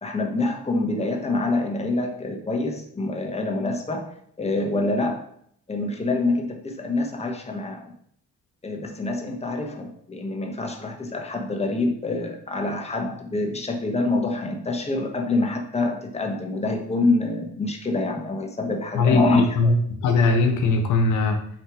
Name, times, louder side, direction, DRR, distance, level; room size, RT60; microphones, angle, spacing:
voice 1, 0.0-4.1 4.4-5.3 5.7-7.9 8.6-19.7, left 2 dB, 20° left, 3 dB, 1.3 m, -26 dB
voice 2, 18.9-19.7 20.0-21.4, left 3 dB, 90° left, 4 dB, 1.1 m, -20 dB
8.9 x 3.4 x 4.9 m, 0.66 s
cardioid pair, 90°, 30 cm